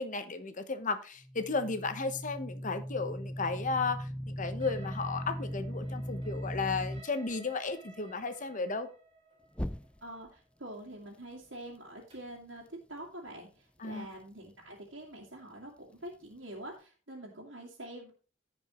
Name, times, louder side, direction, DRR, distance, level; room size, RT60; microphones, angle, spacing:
voice 1, 0.0-8.9 13.8-14.1, left 4 dB, 45° left, 1.1 m, -34 dB
sound 1, 1.2-7.0 9.5-10.3, equal, 5° left, 0.3 m, -38 dB
sound 2, 4.6-12.4, right 2 dB, 25° right, 4.5 m, -57 dB
voice 2, 10.0-18.1, right 1 dB, 90° right, 2.2 m, -46 dB
15.0 x 5.3 x 3.1 m
head